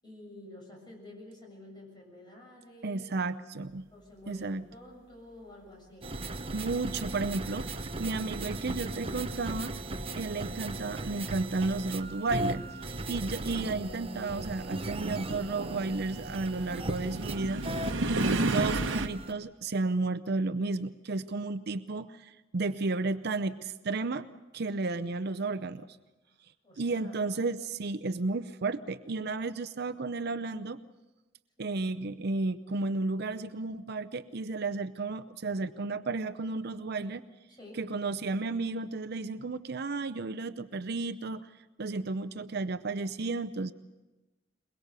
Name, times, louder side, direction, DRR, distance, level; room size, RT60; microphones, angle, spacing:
voice 1, 0.0-3.1 3.9-6.2 13.0-13.3 26.2-27.3 31.6-31.8 37.5-37.8, left 1 dB, 25° left, -1 dB, 7.2 m, -50 dB
voice 2, 2.8-3.9 4.3-4.6 6.5-7.7 8.0-9.7 10.1-17.6 18.0-24.3 24.5-25.9 26.8-30.8 31.6-37.2 37.8-41.5 41.8-43.7, right 3 dB, 55° right, 12 dB, 0.6 m, -33 dB
sound 1, 6.0-19.3, right 2 dB, 30° right, 0.9 m, -37 dB
sound 2, 14.0-19.1, right 2 dB, 75° right, 1.1 m, -33 dB
22.5 x 22.0 x 6.8 m, 1.1 s
head